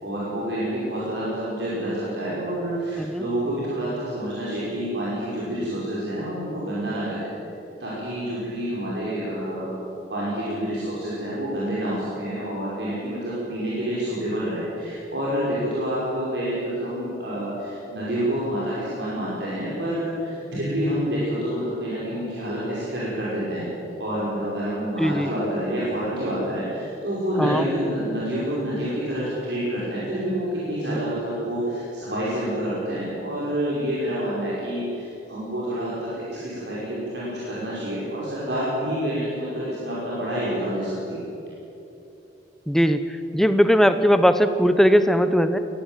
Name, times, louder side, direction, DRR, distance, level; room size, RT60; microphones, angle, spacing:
voice 1, 0.0-7.3 7.8-9.7 10.1-23.7 24.0-41.2, right 1 dB, 70° right, -8 dB, 5.7 m, -28 dB
voice 2, 25.0-25.3 27.4-27.6 30.9-31.0 42.7-43.0 43.3-45.6, equal, ahead, 10 dB, 0.9 m, -19 dB
21.0 x 16.0 x 9.0 m, 2.9 s
head